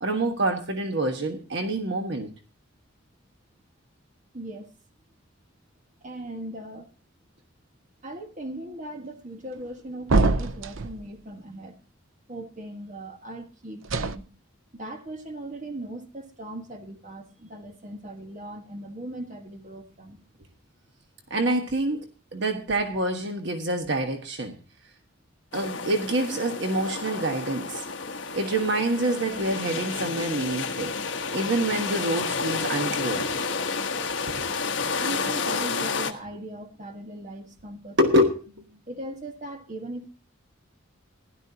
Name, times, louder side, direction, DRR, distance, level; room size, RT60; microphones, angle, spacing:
voice 1, 0.0-2.3 21.3-24.5 25.5-27.8 28.3-30.9 31.3-33.3 34.2-34.3 38.0-38.4, right 1 dB, 60° right, 1.3 m, -26 dB
voice 2, 4.3-4.7 6.0-6.9 8.0-11.8 12.3-14.2 14.7-20.2 35.0-38.2 38.9-40.1, right 1 dB, 35° right, 1.6 m, -39 dB
sound 1, 10.1-11.0 13.8-14.2, right 3 dB, 75° right, 0.7 m, -23 dB
sound 2, 25.5-36.1, left 4 dB, 65° left, 1.3 m, -30 dB
16.0 x 11.5 x 2.8 m
head